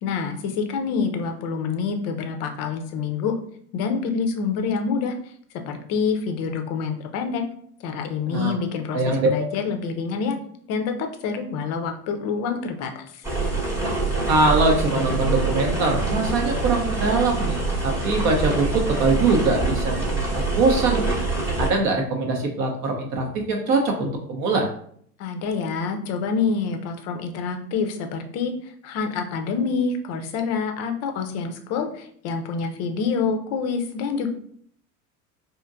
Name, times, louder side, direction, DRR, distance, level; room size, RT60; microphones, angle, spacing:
voice 1, 0.0-3.3 3.7-5.1 5.7-7.4 7.8-10.4 10.7-13.2 25.2-34.3, left 5 dB, 35° left, 6 dB, 0.6 m, -27 dB
voice 2, 8.9-9.3 14.3-20.2 20.6-21.0 21.6-24.7, right 3 dB, 40° right, 2 dB, 0.6 m, -22 dB
sound 1, 13.2-21.7, right 3 dB, 5° right, 0.9 m, -25 dB
4.3 x 2.7 x 2.4 m, 0.62 s
figure-of-eight pair, 75°, 45 cm